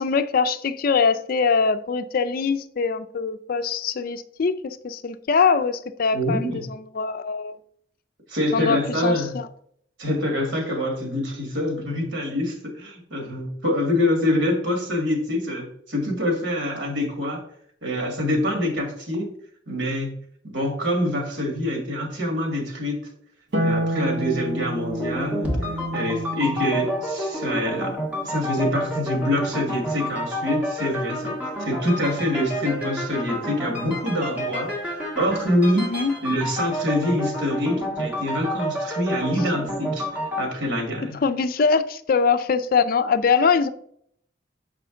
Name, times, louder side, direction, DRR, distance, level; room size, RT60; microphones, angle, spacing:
voice 1, 0.0-7.6 8.5-9.5 35.8-36.1 41.2-43.7, left 5 dB, 50° left, 0.4 m, -23 dB
voice 2, 6.1-6.7 8.3-9.4 10.0-17.4 17.8-19.3 19.7-20.2 20.4-23.0 23.6-25.5 25.9-28.0 28.2-35.9 36.2-40.1 40.4-41.2, left 1 dB, 85° right, 1.9 m, -25 dB
Harp, 23.5-30.0 31.7-32.7, equal, 65° right, 1.0 m, -31 dB
sound 1, 24.9-40.4, equal, 10° right, 1.5 m, -30 dB
6.7 x 5.0 x 3.7 m
head